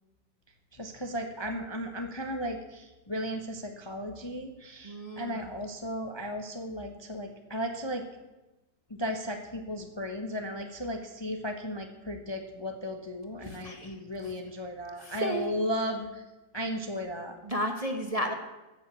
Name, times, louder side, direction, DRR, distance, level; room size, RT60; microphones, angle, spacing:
voice 1, 0.7-8.0 8.9-16.2 16.5-17.4, equal, 20° left, 4 dB, 0.9 m, -35 dB
voice 2, 4.8-5.4 13.4-13.9 14.2-14.3 15.0-15.5 17.4-18.3, equal, 25° right, 4 dB, 1.1 m, -33 dB
14.5 x 7.4 x 8.2 m, 1.1 s
omnidirectional pair, 2.0 m